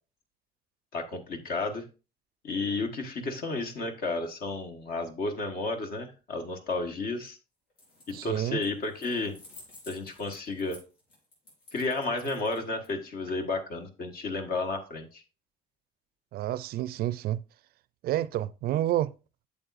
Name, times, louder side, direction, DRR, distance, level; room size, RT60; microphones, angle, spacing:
voice 1, 0.9-1.9 2.4-7.4 8.1-9.4 9.9-10.8 11.7-15.2, left 3 dB, 60° left, 1.5 m, -32 dB
sound 1, 7.7-8.3 8.6-12.9, left 2 dB, 85° left, 4.6 m, -52 dB
voice 2, 8.1-8.6 16.3-17.4 18.0-19.1, right 13 dB, 65° right, 0.4 m, -29 dB
8.8 x 7.1 x 2.5 m
cardioid pair, 110°, 17 cm